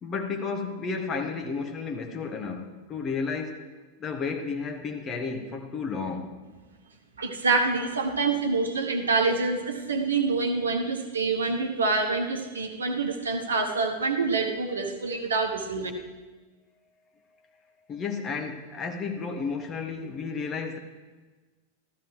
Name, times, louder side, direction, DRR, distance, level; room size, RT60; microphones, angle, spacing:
voice 1, 0.0-3.7 4.0-6.3 17.9-20.8, left 5 dB, 25° left, 4 dB, 1.3 m, -32 dB
voice 2, 7.2-15.9, right 3 dB, 70° right, 5 dB, 1.1 m, -26 dB
14.0 x 13.0 x 3.3 m, 1.3 s
figure-of-eight pair, 90°, 0 cm